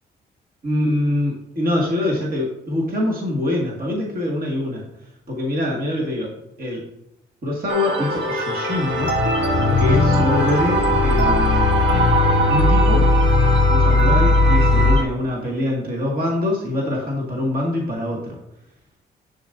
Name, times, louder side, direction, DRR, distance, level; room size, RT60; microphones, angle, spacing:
voice 1, 0.6-4.8 5.3-6.3 6.6-6.8 7.4-9.1 9.8-12.0 12.5-13.1 13.7-18.4, left 1 dB, 45° right, -2 dB, 2.1 m, -24 dB
sound 1, 7.7-15.0, right 3 dB, 65° right, 1.2 m, -22 dB
sound 2, 8.9-15.0, left 4 dB, 35° left, 0.4 m, -18 dB
7.7 x 7.0 x 2.6 m, 0.81 s
supercardioid pair, 55°, 21 cm